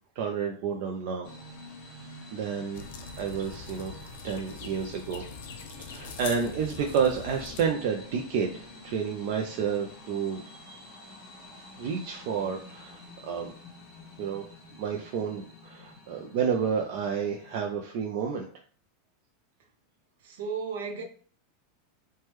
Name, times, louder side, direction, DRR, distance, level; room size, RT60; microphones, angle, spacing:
voice 1, 0.2-1.3 2.3-3.9 4.2-5.2 5.8-10.9 11.8-13.5 14.2-14.4 14.7-18.5, right 6 dB, 45° right, 0.3 m, -30 dB
sound 1, 1.2-17.6, left 2 dB, 35° left, 0.7 m, -48 dB
sound 2, 2.7-7.7, left 5 dB, 60° left, 0.4 m, -43 dB
voice 2, 20.2-21.0, right 5 dB, 70° right, 0.7 m, -34 dB
3.3 x 2.1 x 3.0 m
supercardioid pair, 175°, 0 cm